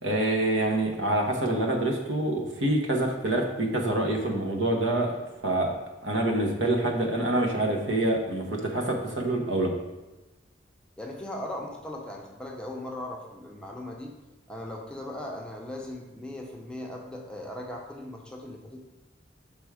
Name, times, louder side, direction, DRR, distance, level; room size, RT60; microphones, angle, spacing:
voice 1, 0.0-5.1 5.4-5.7 6.0-9.7, right 1 dB, 70° right, 1 dB, 1.0 m, -26 dB
voice 2, 11.0-14.1 14.5-18.8, left 1 dB, 5° left, -1 dB, 0.6 m, -38 dB
6.0 x 3.5 x 4.8 m, 1.1 s
head